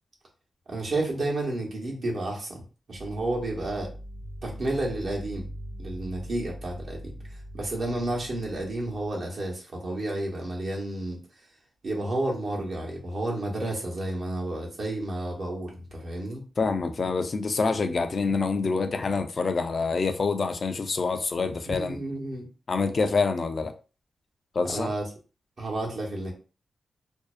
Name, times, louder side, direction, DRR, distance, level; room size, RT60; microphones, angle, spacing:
voice 1, 0.7-2.6 2.9-3.9 4.4-5.5 5.8-7.1 7.5-11.2 11.8-16.4 21.7-22.5 24.7-25.0 25.6-26.3, right 2 dB, 55° right, 0.9 m, -31 dB
sound 1, 2.9-9.1, equal, 20° right, 0.4 m, -41 dB
voice 2, 16.6-22.0 22.7-23.7 24.5-24.9, left 4 dB, 45° left, 0.3 m, -26 dB
2.5 x 2.1 x 2.4 m
wide cardioid pair, 110°, 0 cm